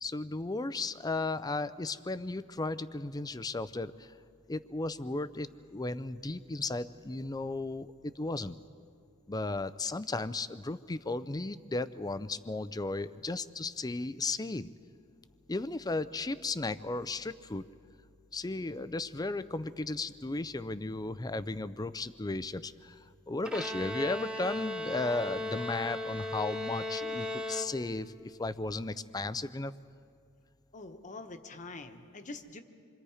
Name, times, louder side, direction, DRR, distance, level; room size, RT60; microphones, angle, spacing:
voice 1, 0.0-4.1 4.5-8.6 9.3-14.7 15.5-17.6 18.3-29.7, left 2 dB, 20° left, 14 dB, 0.5 m, -35 dB
Bowed string instrument, 23.4-28.2, left 1 dB, 5° right, 0.9 m, -37 dB
voice 2, 30.7-32.6, left 3 dB, 35° left, 6 dB, 1.2 m, -45 dB
27.5 x 24.5 x 4.9 m, 2.3 s
head